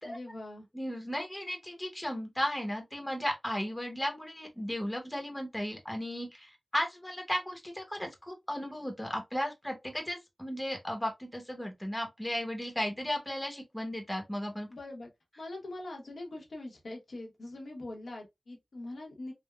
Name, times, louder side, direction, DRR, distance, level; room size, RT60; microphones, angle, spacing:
voice 1, 0.0-0.7 14.7-15.1 15.4-19.3, left 2 dB, 80° left, 0.9 m, -42 dB
voice 2, 0.7-14.7, equal, 10° left, 0.8 m, -35 dB
3.5 x 2.0 x 2.3 m
wide cardioid pair, 70°, 0 cm